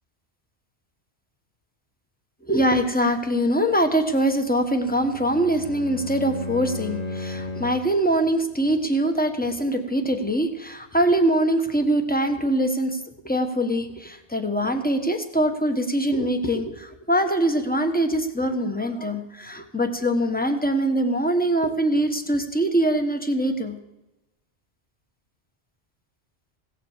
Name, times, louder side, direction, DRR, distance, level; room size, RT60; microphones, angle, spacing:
voice 1, 2.4-23.8, right 1 dB, 10° left, 5 dB, 1.2 m, -23 dB
Bowed string instrument, 4.8-8.0, left 2 dB, 40° left, 0.9 m, -34 dB
17.0 x 7.6 x 7.3 m, 1.0 s
omnidirectional pair, 1.1 m